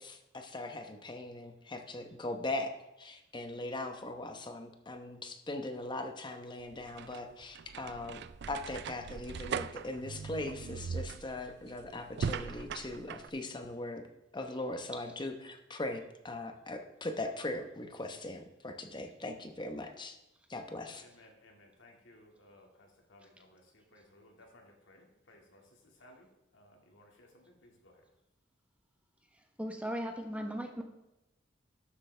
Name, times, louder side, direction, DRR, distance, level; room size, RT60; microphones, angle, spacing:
voice 1, 0.0-8.2 8.5-14.0 14.3-20.2 20.5-21.0, left 2 dB, 25° left, 6 dB, 0.9 m, -40 dB
sound 1, 6.6-13.3, right 6 dB, 60° right, 0.4 m, -40 dB
voice 2, 21.0-28.0, left 1 dB, 85° left, 1 dB, 2.1 m, -60 dB
voice 3, 29.6-30.8, equal, 5° right, 4 dB, 0.9 m, -37 dB
12.0 x 8.1 x 3.4 m, 0.92 s
head